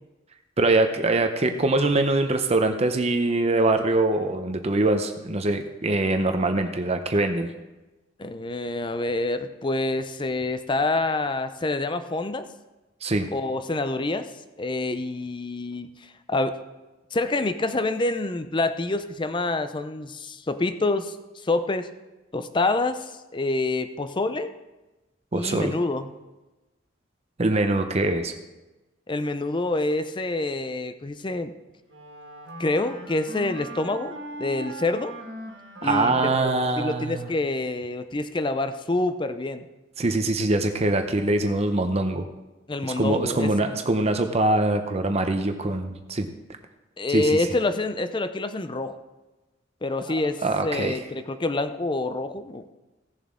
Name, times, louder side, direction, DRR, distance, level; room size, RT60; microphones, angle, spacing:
voice 1, 0.6-7.5 13.0-13.3 25.3-25.7 27.4-28.3 35.8-37.3 40.0-42.3 42.8-46.3 47.1-47.4 50.1-50.2 50.4-51.0, right 2 dB, 30° right, 7 dB, 0.7 m, -23 dB
voice 2, 8.2-12.4 13.3-14.3 14.6-16.6 17.1-21.9 22.3-24.5 25.3-26.1 29.1-31.5 32.6-35.1 35.8-39.6 42.7-43.5 47.0-49.0 49.8-52.6, left 2 dB, 25° left, 10 dB, 0.5 m, -27 dB
Wind instrument woodwind instrument, 31.9-37.6, right 1 dB, 65° right, 1.8 m, -40 dB
17.0 x 7.1 x 3.7 m, 1.1 s
head